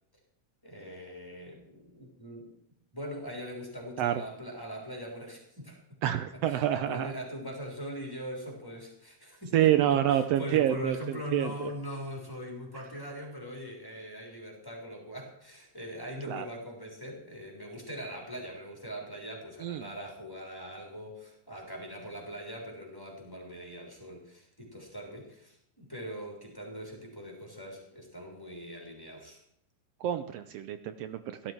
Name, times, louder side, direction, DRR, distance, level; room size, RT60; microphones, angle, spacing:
voice 1, 0.6-2.5 2.9-5.8 6.3-29.4, equal, 5° left, 0 dB, 3.4 m, -41 dB
voice 2, 6.0-7.1 9.5-11.7 16.3-16.5 19.6-19.9 30.0-31.5, right 11 dB, 90° right, 10 dB, 1.4 m, -28 dB
17.0 x 12.5 x 4.6 m, 0.72 s
omnidirectional pair, 3.7 m